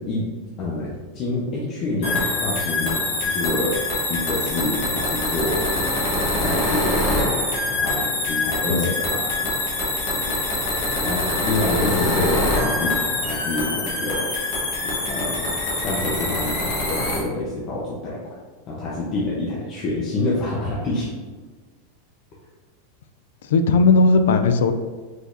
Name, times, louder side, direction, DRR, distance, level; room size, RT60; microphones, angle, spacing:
voice 1, 0.6-3.7 4.1-5.6 6.4-7.3 7.7-9.5 10.1-10.3 11.0-14.3 14.8-15.5 15.7-18.3 18.7-21.1, left 2 dB, 35° left, -5 dB, 0.9 m, -27 dB
sound 1, 2.0-17.2, left 2 dB, 55° left, 1.4 m, -24 dB
voice 2, 23.4-24.7, left 3 dB, 85° left, 9 dB, 0.4 m, -17 dB
5.0 x 3.9 x 2.7 m, 1.4 s
supercardioid pair, 150°, 0 cm